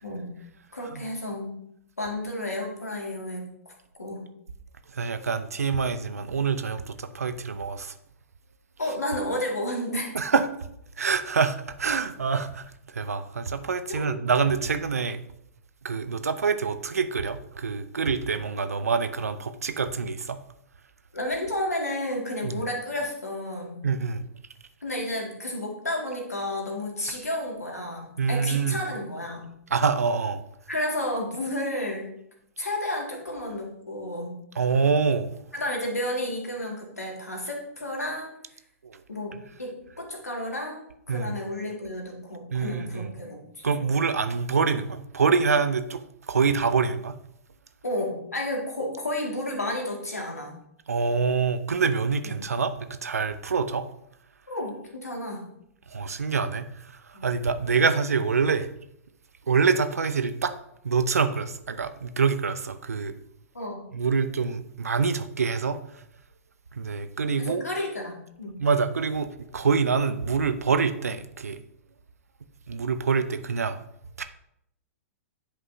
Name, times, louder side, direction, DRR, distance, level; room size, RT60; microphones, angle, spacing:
voice 1, 0.0-0.3 0.7-1.6 2.0-3.5 4.0-4.3 8.8-10.3 13.9-14.2 21.1-23.8 24.8-29.5 30.7-32.1 32.6-34.4 35.5-38.3 39.1-43.7 47.8-50.5 52.2-52.4 54.5-55.5 57.1-57.3 63.5-63.8 67.4-68.5, left 1 dB, 90° left, 0 dB, 2.0 m, -32 dB
voice 2, 4.9-7.9 10.1-10.5 11.0-15.2 15.8-20.4 22.4-22.6 23.8-24.2 28.2-28.8 29.7-30.4 34.6-35.3 38.8-39.0 41.1-41.3 42.5-43.1 43.6-46.0 46.3-47.2 50.9-53.9 55.9-58.7 59.5-60.5 60.8-63.1 63.9-65.8 66.7-67.6 68.6-71.6 72.7-73.8 74.2-74.3, right 5 dB, 80° right, 11 dB, 0.6 m, -26 dB
10.0 x 5.3 x 2.7 m, 0.75 s
figure-of-eight pair, 110°, 8 cm